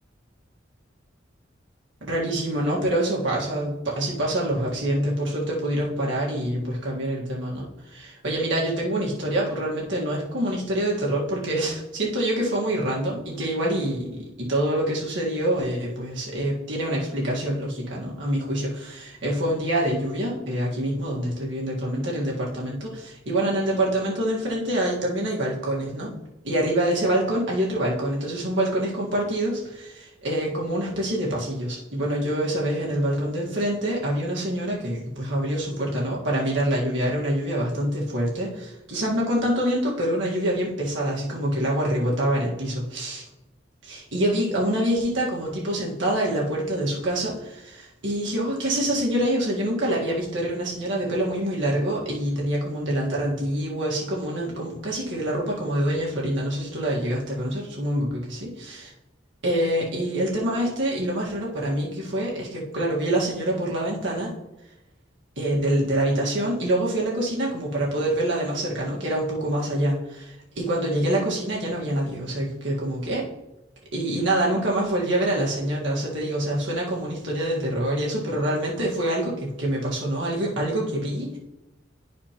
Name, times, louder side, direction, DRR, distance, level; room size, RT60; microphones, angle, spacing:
voice 1, 2.0-43.2 43.8-58.9 59.4-64.3 65.4-73.3 73.9-81.4, right 1 dB, 80° right, -4 dB, 1.7 m, -26 dB
11.5 x 4.2 x 2.9 m, 0.97 s
head